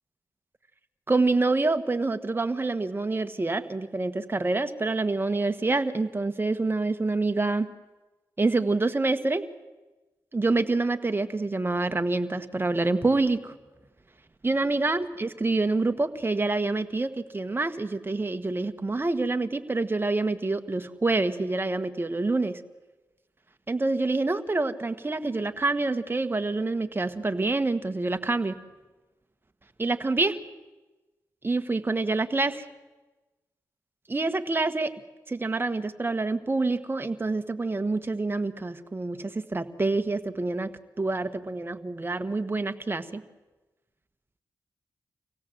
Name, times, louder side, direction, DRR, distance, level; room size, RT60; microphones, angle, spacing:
voice 1, 1.1-7.7 8.4-9.5 10.3-13.5 14.4-22.6 23.7-28.6 29.8-30.4 31.4-32.6 34.1-34.9 35.3-40.7 41.0-43.2, right 3 dB, 30° right, 9 dB, 1.6 m, -27 dB
25.5 x 17.0 x 7.9 m, 1.2 s
supercardioid pair, 40°, 8 cm